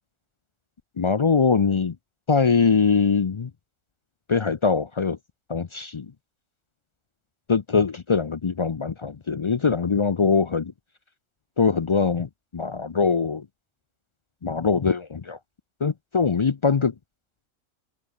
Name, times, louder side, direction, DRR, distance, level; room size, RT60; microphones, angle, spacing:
voice 1, 1.0-2.0 2.3-3.5 4.3-5.2 5.5-6.1 7.5-10.7 11.6-13.5 14.4-15.4 15.8-16.9, left 5 dB, 55° left, 0.3 m, -22 dB
omnidirectional pair, 1.3 m